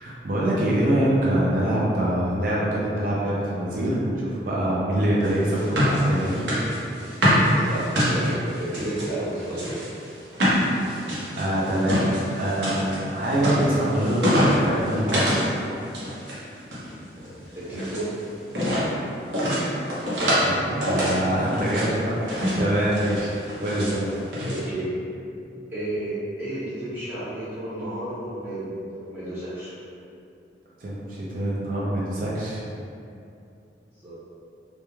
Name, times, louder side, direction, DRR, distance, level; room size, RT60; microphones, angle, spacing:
voice 1, 0.0-6.5 11.2-15.5 20.4-23.4 23.6-24.3 30.8-32.7, right 1 dB, 50° right, -7 dB, 0.4 m, -24 dB
sound 1, 5.2-9.1 9.5-15.5 15.8-16.4 16.6-18.1 18.5-18.9 19.3-20.5 20.8-21.9 22.3-22.6 22.9-23.9 24.3-24.6, equal, 85° right, 0.7 m, -25 dB
voice 2, 7.6-9.8 17.6-18.1 23.6-23.9 24.4-24.9 25.7-29.7 34.0-34.2, right 1 dB, 10° right, -13 dB, 0.7 m, -32 dB
2.3 x 2.2 x 3.0 m, 2.6 s
head